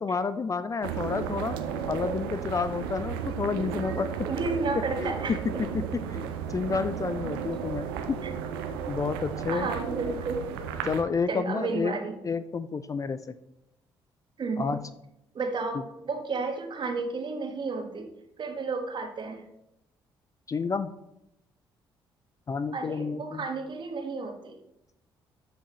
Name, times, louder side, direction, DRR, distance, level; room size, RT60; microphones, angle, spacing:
voice 1, 0.0-1.6 1.9-4.1 5.0-5.1 6.1-8.2 8.9-9.7 10.8-11.9 12.2-13.3 14.6-14.8 20.5-20.9 22.5-23.4, left 5 dB, 25° left, 13 dB, 0.4 m, -30 dB
sound 1, 0.8-11.0, right 7 dB, 70° right, 0.7 m, -34 dB
voice 2, 4.2-5.6 6.0-6.2 8.2-8.3 9.5-10.5 11.3-12.2 14.4-14.8 15.3-18.1 18.4-19.4 22.7-24.6, right 4 dB, 40° right, 5 dB, 1.4 m, -32 dB
12.5 x 6.0 x 3.1 m, 0.85 s
figure-of-eight pair, 45°, 12 cm